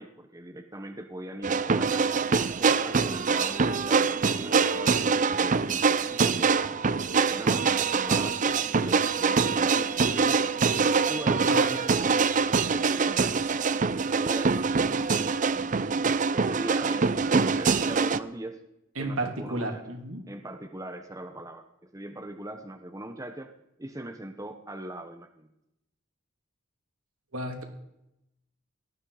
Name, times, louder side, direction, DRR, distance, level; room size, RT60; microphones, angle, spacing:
voice 1, 0.0-2.3 2.6-6.7 7.3-10.5 11.1-13.5 13.9-15.8 16.3-18.6 19.0-19.8 20.3-23.5 23.8-25.5, right 1 dB, 15° right, 6 dB, 0.9 m, -41 dB
sound 1, 1.4-18.2, right 5 dB, 35° right, 0.5 m, -24 dB
voice 2, 11.4-11.7 19.0-20.2 27.3-27.6, right 2 dB, 75° right, 3 dB, 3.0 m, -32 dB
18.0 x 13.0 x 5.0 m, 0.85 s
head